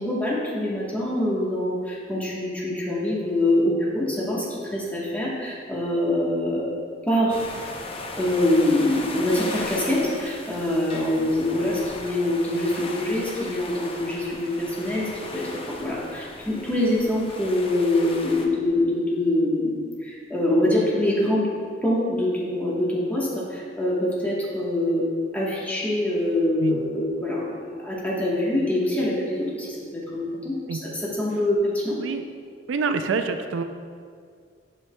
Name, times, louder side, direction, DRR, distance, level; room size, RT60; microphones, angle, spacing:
voice 1, 0.0-6.7 7.1-7.4 8.2-21.5 21.8-25.1 25.3-32.0, left 1 dB, 10° left, -6 dB, 1.1 m, -24 dB
sound 1, 7.3-18.5, left 2 dB, 30° left, 0.5 m, -37 dB
voice 2, 32.7-33.6, right 5 dB, 85° right, 7 dB, 0.4 m, -26 dB
8.0 x 5.6 x 2.2 m, 2.1 s
head